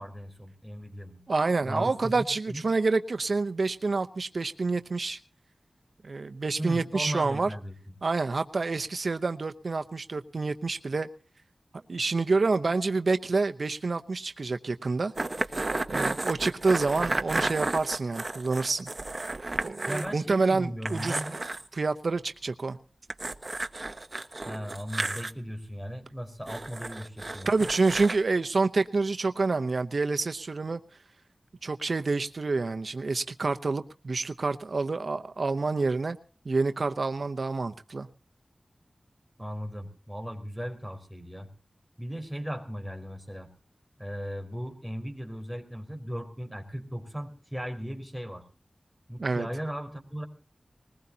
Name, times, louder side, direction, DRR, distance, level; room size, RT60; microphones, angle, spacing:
voice 1, 0.0-1.2 1.6-2.6 6.6-7.7 19.9-21.4 24.4-27.7 39.4-41.5 42.0-43.5 44.0-48.4 49.1-50.3, equal, 5° left, 5 dB, 4.5 m, -37 dB
voice 2, 1.3-5.2 6.0-7.5 8.0-11.1 11.9-15.1 15.9-18.9 19.6-21.2 21.7-22.8 27.5-30.8 31.6-36.2 36.5-38.1 49.2-49.5, right 3 dB, 70° right, 9 dB, 0.7 m, -28 dB
sound 1, 15.2-20.1 20.4-20.5 20.8-21.7 23.1-25.3 26.5-28.2, right 2 dB, 45° right, 1.2 m, -32 dB
21.0 x 19.5 x 2.8 m, 0.37 s
wide cardioid pair, 50°, 0 cm